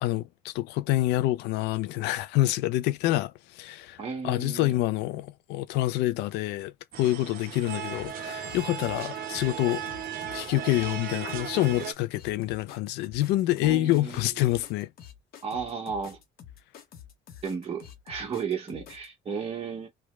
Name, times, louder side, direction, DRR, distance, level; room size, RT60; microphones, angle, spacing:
voice 1, 0.0-4.0 4.2-6.7 7.0-9.8 10.3-14.9, left 16 dB, 85° left, 0.4 m, -27 dB
voice 2, 4.0-4.7 13.6-14.6 15.4-16.2 17.4-19.9, right 6 dB, 35° right, 1.4 m, -34 dB
sound 1, 6.9-11.9, right 9 dB, 60° right, 0.9 m, -36 dB
sound 2, 7.9-19.1, left 9 dB, 65° left, 0.9 m, -48 dB
3.2 x 2.3 x 3.0 m
cardioid pair, 110°, 17 cm